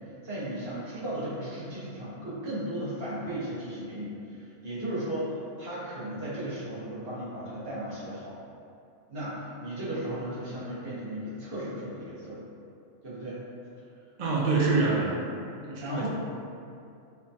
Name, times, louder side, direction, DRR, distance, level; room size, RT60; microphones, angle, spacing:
voice 1, 0.2-8.4 9.1-12.4 13.0-13.4 15.8-16.1, right 1 dB, 50° right, -9 dB, 1.2 m, -35 dB
voice 2, 14.2-15.2 15.6-16.1, right 3 dB, 75° right, -4 dB, 0.3 m, -25 dB
4.3 x 2.2 x 2.6 m, 2.5 s
omnidirectional pair, 1.4 m